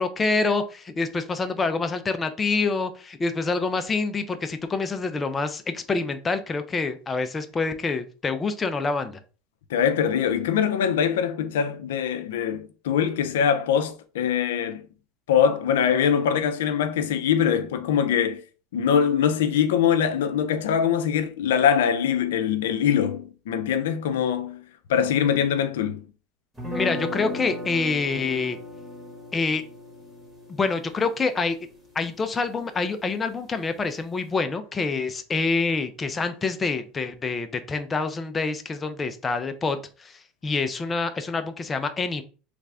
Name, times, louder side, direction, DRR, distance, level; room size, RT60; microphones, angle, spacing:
voice 1, 0.0-9.2 26.7-28.6 29.3-29.6 30.5-31.6 32.0-42.2, left 4 dB, 20° left, 0.4 m, -26 dB
voice 2, 9.7-14.8 15.3-18.4 18.7-24.6 24.9-26.0, left 8 dB, 85° left, 0.4 m, -23 dB
sound 1, 26.6-32.5, left 1 dB, 5° right, 1.4 m, -36 dB
3.2 x 2.4 x 3.3 m
supercardioid pair, 100°, 0 cm